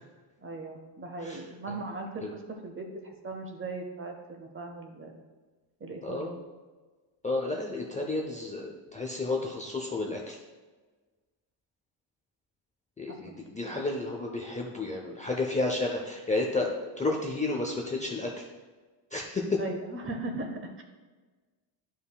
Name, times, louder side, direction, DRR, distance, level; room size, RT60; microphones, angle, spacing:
voice 1, 0.4-5.2 5.8-6.3 13.1-13.4 19.6-20.8, right 2 dB, 25° right, 3 dB, 0.8 m, -38 dB
voice 2, 6.0-6.4 7.2-10.4 13.0-18.5 19.1-19.6, left 2 dB, 15° left, 0 dB, 0.5 m, -31 dB
11.0 x 5.6 x 2.3 m, 1.3 s
cardioid pair, 170°, 46 cm